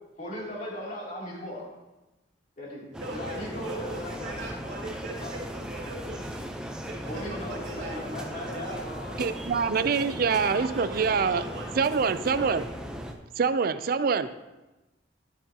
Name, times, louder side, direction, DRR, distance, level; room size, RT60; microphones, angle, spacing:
voice 1, 0.2-1.7 2.6-2.9 3.1-4.4 5.2-5.3 7.1-9.3, equal, 45° left, -5 dB, 2.9 m, -37 dB
sound 1, 2.9-13.1, equal, 5° right, 0.6 m, -38 dB
voice 2, 2.9-6.4 6.8-8.8 10.2-11.9 12.2-12.5 13.3-13.5, right 2 dB, 85° right, -3 dB, 2.5 m, -41 dB
voice 3, 9.2-11.4 11.8-12.6 13.4-14.3, right 5 dB, 50° right, 13 dB, 0.4 m, -25 dB
11.5 x 9.1 x 2.9 m, 1.1 s
head